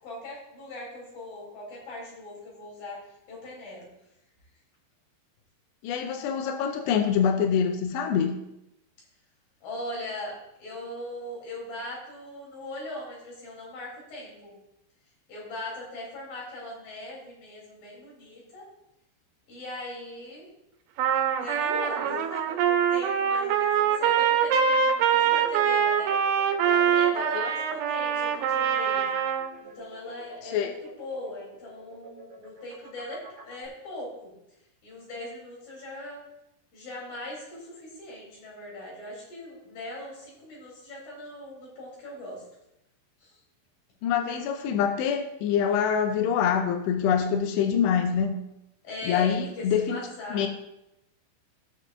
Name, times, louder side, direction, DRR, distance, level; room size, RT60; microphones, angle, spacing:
voice 1, 0.0-3.0 3.3-3.9 9.6-10.3 10.6-14.5 15.3-18.7 19.5-20.5 21.2-26.1 26.7-29.2 29.6-34.3 34.8-36.2 36.7-42.4 43.2-43.3 48.8-50.4, left 1 dB, 45° left, -4 dB, 5.3 m, -40 dB
voice 2, 5.8-8.4 27.1-27.5 30.4-30.7 44.0-48.4 49.1-50.0 50.3-50.5, left 7 dB, 85° left, 5 dB, 2.4 m, -25 dB
Trumpet, 21.0-29.5, right 8 dB, 80° right, 3.3 m, -24 dB
sound 1, 25.2-33.6, right 2 dB, 40° right, 2.5 m, -46 dB
18.0 x 6.3 x 2.7 m, 0.85 s
omnidirectional pair, 5.7 m